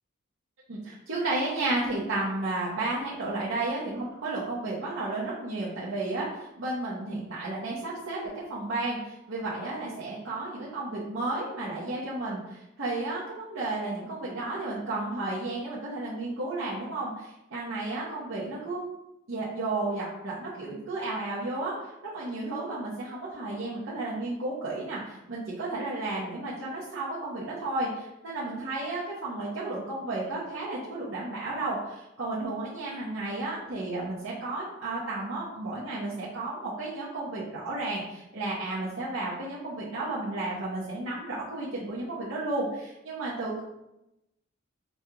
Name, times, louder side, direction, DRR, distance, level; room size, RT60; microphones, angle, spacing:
voice 1, 0.7-6.3 6.6-18.8 19.3-43.6, right 2 dB, 80° right, -8 dB, 0.8 m, -33 dB
5.2 x 2.3 x 2.8 m, 0.90 s
head